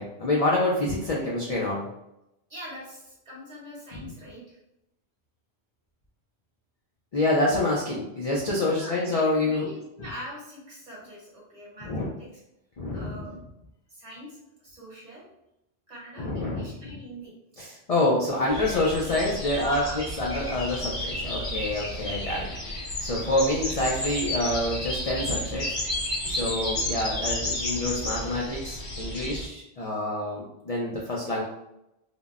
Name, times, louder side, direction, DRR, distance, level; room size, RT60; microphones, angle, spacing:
voice 1, 0.0-1.9 3.9-4.0 7.1-9.7 11.8-12.1 12.8-13.2 16.2-17.0 17.6-19.8 20.2-22.5 23.0-25.8 26.2-31.4, left 2 dB, 50° left, -4 dB, 0.4 m, -27 dB
voice 2, 2.5-4.6 8.6-9.0 9.4-12.3 12.9-13.4 13.9-15.2 15.9-17.3 19.4-20.0 21.2-21.5 26.4-26.8, equal, 40° right, -6 dB, 1.1 m, -42 dB
sound 1, 18.5-29.5, left 1 dB, 85° left, 1.2 m, -32 dB
3.4 x 2.1 x 2.4 m, 0.86 s
omnidirectional pair, 1.1 m